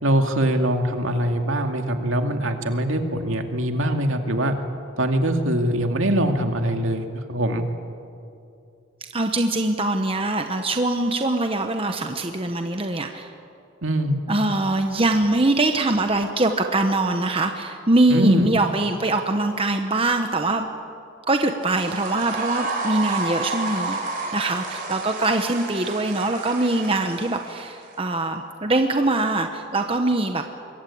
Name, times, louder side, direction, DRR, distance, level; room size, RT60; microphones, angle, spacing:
voice 1, 0.0-4.6 5.0-7.6 13.8-14.2 18.1-18.5, right 1 dB, 75° right, 5 dB, 2.4 m, -22 dB
voice 2, 9.1-13.3 14.3-20.7 21.3-24.0 24.3-30.4, right 2 dB, 25° right, 5 dB, 1.1 m, -23 dB
sound 1, 21.6-27.9, right 3 dB, 45° right, 5.5 m, -31 dB
26.0 x 22.5 x 8.6 m, 2.6 s
head